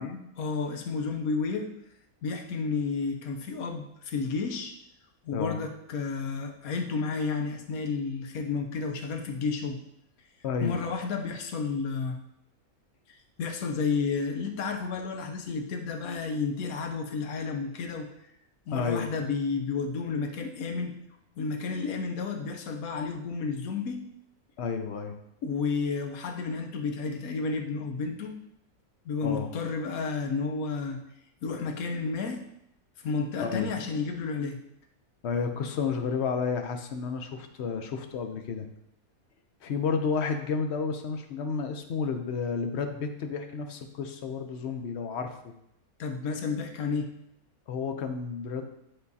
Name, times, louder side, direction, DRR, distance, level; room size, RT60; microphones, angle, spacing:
voice 1, 0.4-1.7 2.2-4.7 5.2-9.8 10.6-12.2 13.4-18.1 18.7-20.9 21.4-24.0 25.4-28.3 29.0-31.0 31.4-32.4 33.0-34.6 46.0-47.1, left 4 dB, 75° left, 5 dB, 1.2 m, -31 dB
voice 2, 10.4-10.8 18.7-19.1 24.6-25.2 29.2-29.5 33.4-33.7 35.2-38.7 39.6-45.4 47.7-48.6, left 5 dB, 55° left, 6 dB, 0.8 m, -31 dB
10.5 x 3.8 x 2.7 m, 0.79 s
omnidirectional pair, 1.6 m